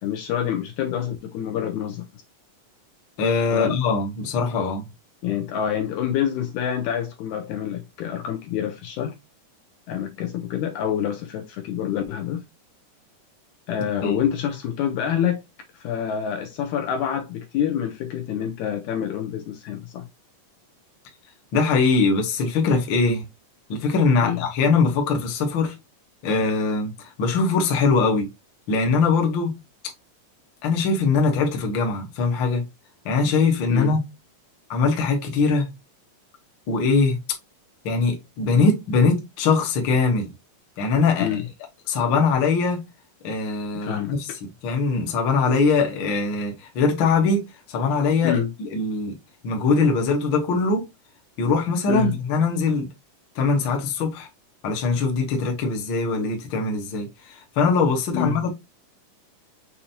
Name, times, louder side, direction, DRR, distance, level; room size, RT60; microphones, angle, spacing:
voice 1, 0.0-2.2 3.5-3.8 5.2-9.2 9.9-12.4 13.7-15.4 15.7-20.1 24.2-24.4 33.7-34.0 41.2-41.5 43.7-44.2 48.2-48.5 51.9-52.2 58.1-58.4, left 9 dB, 80° left, 1.8 m, -27 dB
voice 2, 3.2-4.9 14.0-14.2 21.5-23.2 23.7-25.7 26.2-28.3 28.7-29.5 30.6-32.6 33.0-34.0 34.7-35.7 36.7-37.2 37.8-40.3 40.8-41.4 41.9-42.8 43.2-44.3 44.6-49.1 49.4-50.9 51.4-52.9 53.3-54.3 54.6-58.5, left 4 dB, 60° left, 1.2 m, -22 dB
7.1 x 2.6 x 2.7 m
omnidirectional pair, 3.8 m